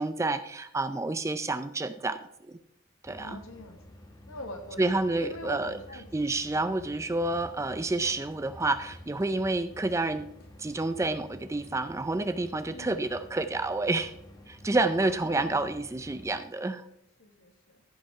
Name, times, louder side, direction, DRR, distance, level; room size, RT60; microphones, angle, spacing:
voice 1, 0.0-2.2 2.5-2.6 3.0-3.4 4.8-5.8 6.1-10.3 10.6-14.1 14.5-16.9, right 2 dB, 15° right, 12 dB, 0.4 m, -29 dB
sound 1, 3.0-16.4, left 1 dB, 20° left, 0.9 m, -51 dB
voice 2, 3.1-3.8 4.3-4.8 5.1-6.0 12.5-13.0 15.0-15.7 17.2-17.8, left 1 dB, 75° left, 7 dB, 1.3 m, -44 dB
sound 2, 7.3-11.7 12.1-12.8, equal, 45° left, 1.6 m, -52 dB
14.0 x 5.3 x 4.7 m, 0.79 s
head